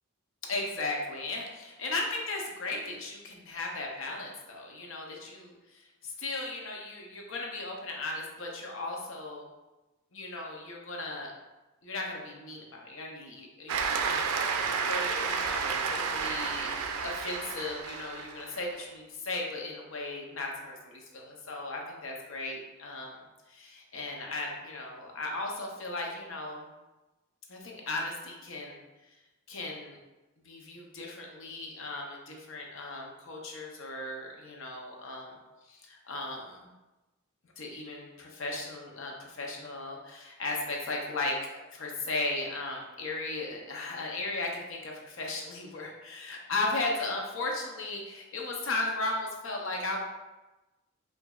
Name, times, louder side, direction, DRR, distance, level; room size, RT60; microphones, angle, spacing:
voice 1, 0.5-9.5 10.1-11.3 11.8-13.9 14.9-23.1 23.5-26.7 27.5-28.8 29.5-30.0 30.4-35.4 35.7-36.7 37.6-50.0, left 2 dB, 60° left, 0 dB, 0.6 m, -36 dB
Cheering / Applause, 13.7-18.6, right 5 dB, 85° right, 0.4 m, -31 dB
4.7 x 2.6 x 2.3 m, 1.1 s
head